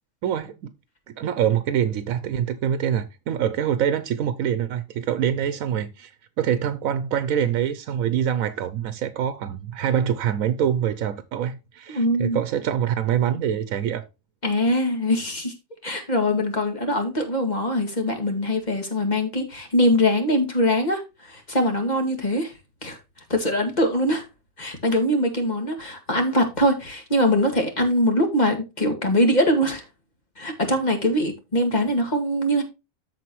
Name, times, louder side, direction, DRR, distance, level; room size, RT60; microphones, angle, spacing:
voice 1, 0.2-0.7 1.2-6.1 6.4-14.0, right 9 dB, 85° right, 1.1 m, -25 dB
voice 2, 11.9-12.4 14.4-15.5 15.8-22.5 22.8-23.0 23.3-24.2 24.6-29.9 30.4-32.6, equal, 35° left, 2.0 m, -22 dB
13.5 x 4.6 x 3.0 m
omnidirectional pair, 1.4 m